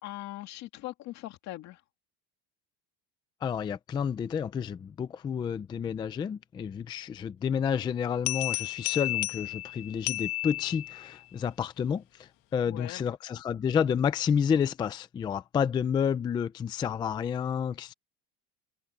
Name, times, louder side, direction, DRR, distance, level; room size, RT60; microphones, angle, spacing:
voice 1, 0.0-1.8 12.7-13.0, left 16 dB, 50° left, 2.3 m, -40 dB
voice 2, 3.4-12.0 12.5-17.9, left 7 dB, 15° left, 0.3 m, -30 dB
sound 1, 8.3-11.2, left 18 dB, 65° left, 1.6 m, -33 dB
cardioid pair, 175°, 36 cm